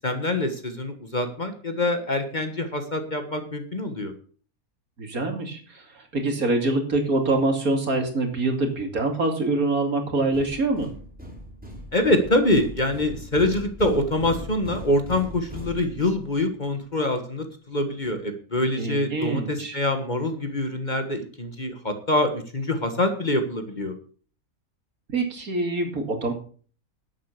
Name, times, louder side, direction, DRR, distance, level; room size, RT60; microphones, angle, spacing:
voice 1, 0.0-4.1 11.9-23.9, left 1 dB, 30° left, 7 dB, 1.6 m, -25 dB
voice 2, 5.0-10.9 18.8-19.8 25.1-26.3, right 2 dB, 70° right, 4 dB, 3.0 m, -25 dB
sound 1, 10.3-16.3, equal, 5° right, 3.3 m, -39 dB
11.5 x 8.5 x 6.7 m, 0.43 s
omnidirectional pair, 1.6 m